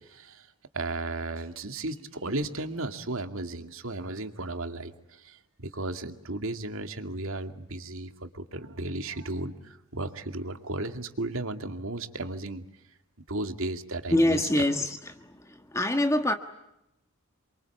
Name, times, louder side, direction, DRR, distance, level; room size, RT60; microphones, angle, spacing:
voice 1, 0.1-0.5 0.7-12.6 13.3-14.4, right 2 dB, 65° right, 7 dB, 2.3 m, -35 dB
voice 2, 14.1-16.3, left 1 dB, 15° left, 7 dB, 1.4 m, -25 dB
28.5 x 24.0 x 8.5 m, 0.87 s
head